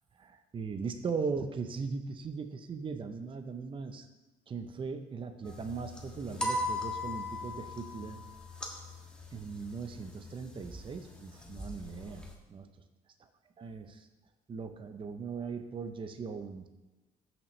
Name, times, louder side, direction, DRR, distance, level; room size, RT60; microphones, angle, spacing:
voice 1, 0.2-4.1 4.5-8.2 9.3-12.2 12.5-12.7 13.6-14.1 14.5-16.7, right 5 dB, 30° right, 7 dB, 0.7 m, -39 dB
sound 1, 5.4-12.3, left 1 dB, 5° left, 1.4 m, -40 dB
13.5 x 6.0 x 3.2 m, 1.1 s
cardioid pair, 110°, 17 cm